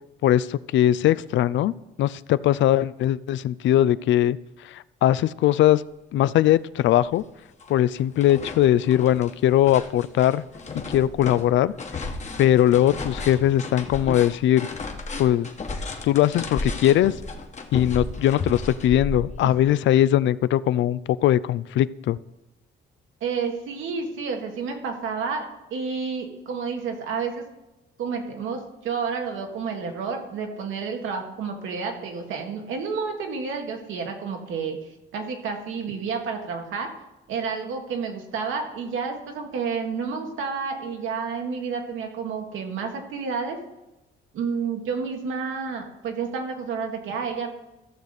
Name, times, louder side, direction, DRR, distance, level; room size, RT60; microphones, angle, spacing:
voice 1, 0.2-1.7 2.0-4.4 4.6-5.8 6.1-7.2 7.7-10.4 10.9-11.7 12.4-14.7 15.2-15.5 16.0-17.1 17.7-22.2, left 12 dB, 70° left, 18 dB, 0.4 m, -20 dB
sound 1, 6.5-6.6 7.0-7.7 8.0-19.7, left 3 dB, 35° left, 1.3 m, -34 dB
voice 2, 23.2-27.3 28.0-34.8 35.1-36.9 37.3-43.6 44.3-47.5, right 5 dB, 80° right, 3 dB, 1.7 m, -30 dB
14.5 x 6.5 x 4.1 m, 0.99 s
cardioid pair, 90°, 20 cm